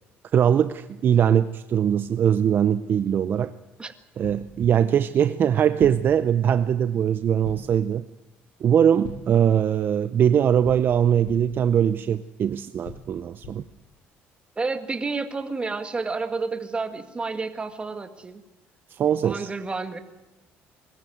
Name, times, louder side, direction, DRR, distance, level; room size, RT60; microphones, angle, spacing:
voice 1, 0.3-3.5 4.2-8.0 8.6-13.6 18.9-19.5, right 9 dB, 50° right, 12 dB, 0.6 m, -21 dB
sound 1, 4.2-4.6 5.8-6.2 7.4-7.8 9.0-9.4 10.6-11.6 12.8-13.8, left 4 dB, 85° left, 4.2 m, -40 dB
voice 2, 14.6-18.4 19.2-20.0, right 4 dB, 25° right, 7 dB, 1.9 m, -30 dB
21.5 x 13.5 x 9.3 m, 1.0 s
cardioid pair, 95°, 5 cm